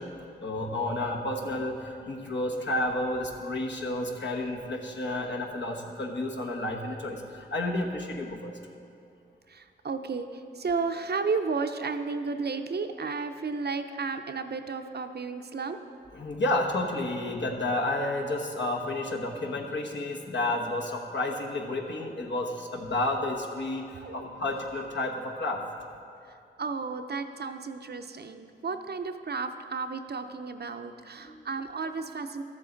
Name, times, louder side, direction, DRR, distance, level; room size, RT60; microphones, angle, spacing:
voice 1, 0.0-8.5 16.1-25.6 31.3-31.4, left 2 dB, 70° left, 0 dB, 1.2 m, -31 dB
voice 2, 9.5-15.8 23.9-24.3 26.2-32.4, right 4 dB, 55° right, 7 dB, 0.6 m, -33 dB
13.0 x 7.5 x 3.9 m, 2.5 s
cardioid pair, 45°, 20 cm